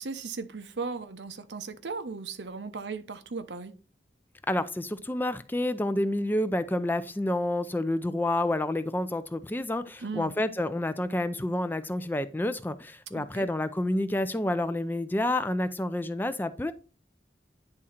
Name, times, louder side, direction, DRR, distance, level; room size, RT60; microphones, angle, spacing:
voice 1, 0.0-3.7 10.0-10.3 13.1-13.5, right 4 dB, 85° right, 0.8 m, -37 dB
voice 2, 4.5-16.7, left 1 dB, 10° left, 0.4 m, -29 dB
9.8 x 3.7 x 4.3 m
head